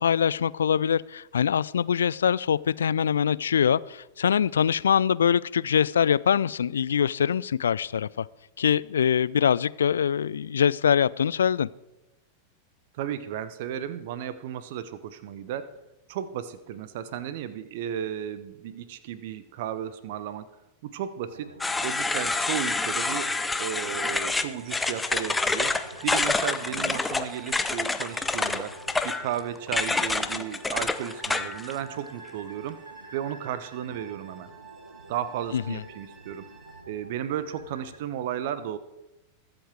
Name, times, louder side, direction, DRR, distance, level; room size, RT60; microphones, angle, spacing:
voice 1, 0.0-8.3 8.6-11.7 35.5-35.8, left 8 dB, 65° left, 0.3 m, -23 dB
voice 2, 12.9-15.8 16.1-20.5 20.8-21.5 21.8-25.8 26.0-28.7 29.0-32.8 33.1-34.5 35.1-36.5 36.9-38.8, right 10 dB, 50° right, 1.0 m, -34 dB
sound 1, 21.3-38.0, right 1 dB, 85° right, 1.1 m, -49 dB
sound 2, 21.6-31.7, left 3 dB, 10° left, 0.8 m, -27 dB
sound 3, 24.0-36.8, right 8 dB, 20° right, 2.0 m, -51 dB
21.5 x 7.9 x 4.7 m
figure-of-eight pair, 90°, 0 cm